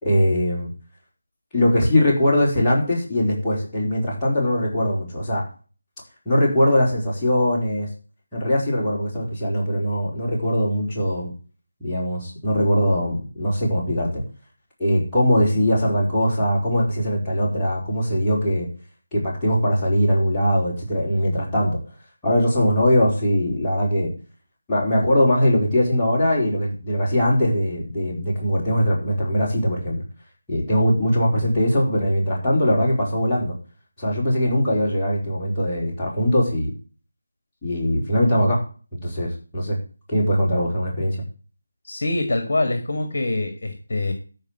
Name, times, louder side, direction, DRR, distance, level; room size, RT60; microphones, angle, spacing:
voice 1, 0.0-0.7 1.5-5.4 6.2-7.9 8.3-11.3 11.8-14.2 14.8-18.7 19.1-21.8 22.2-24.1 24.7-30.0 30.5-33.5 34.0-36.7 37.6-38.6 38.9-39.8 40.1-41.2, equal, 5° left, -10 dB, 4.6 m, -21 dB
voice 2, 41.8-44.1, left 2 dB, 45° left, 6 dB, 2.0 m, -24 dB
13.5 x 5.3 x 7.7 m, 0.38 s
figure-of-eight pair, 160°, 0 cm